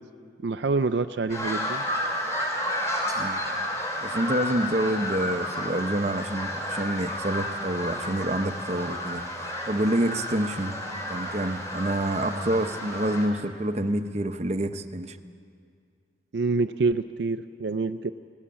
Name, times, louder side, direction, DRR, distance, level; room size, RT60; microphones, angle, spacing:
voice 1, 0.4-1.8 16.3-18.1, right 3 dB, 65° right, 9 dB, 0.4 m, -26 dB
sound 1, 1.3-13.3, left 1 dB, 15° left, 3.0 m, -31 dB
voice 2, 4.0-10.8 11.1-15.2, right 1 dB, 35° right, 9 dB, 0.7 m, -27 dB
18.0 x 17.0 x 8.7 m, 2.2 s
head